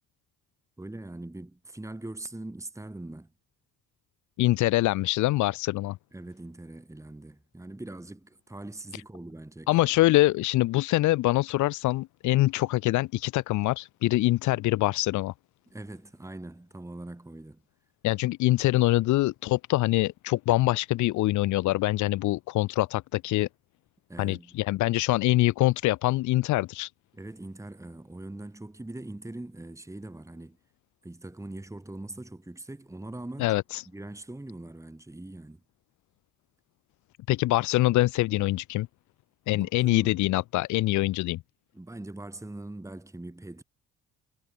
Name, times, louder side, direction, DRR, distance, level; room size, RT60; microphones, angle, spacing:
voice 1, 0.8-3.3 6.1-9.7 15.7-17.6 24.1-24.5 27.1-30.6 31.0-33.6 33.9-35.6 39.5-40.1 41.7-43.6, right 2 dB, 10° right, 3.3 m, -42 dB
voice 2, 4.4-6.0 9.7-15.3 18.0-23.5 24.2-26.9 33.4-33.8 37.3-38.9 39.5-41.4, left 17 dB, 75° left, 0.5 m, -24 dB
cardioid pair, 90°, 30 cm